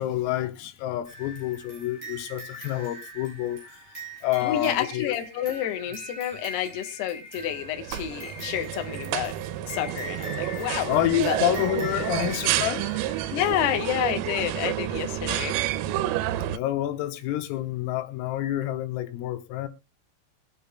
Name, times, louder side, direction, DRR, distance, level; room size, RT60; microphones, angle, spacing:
voice 1, 0.0-3.8 4.2-5.2 10.9-12.9 16.5-19.7, left 13 dB, 85° left, 3.6 m, -28 dB
sound 1, 1.0-13.7, right 2 dB, 20° right, 8.3 m, -42 dB
voice 2, 4.4-9.3 9.7-10.9 11.2-11.4 13.3-15.6, left 12 dB, 70° left, 2.7 m, -29 dB
sound 2, 7.4-16.6, right 13 dB, 85° right, 3.3 m, -30 dB
22.5 x 8.6 x 2.3 m
omnidirectional pair, 6.0 m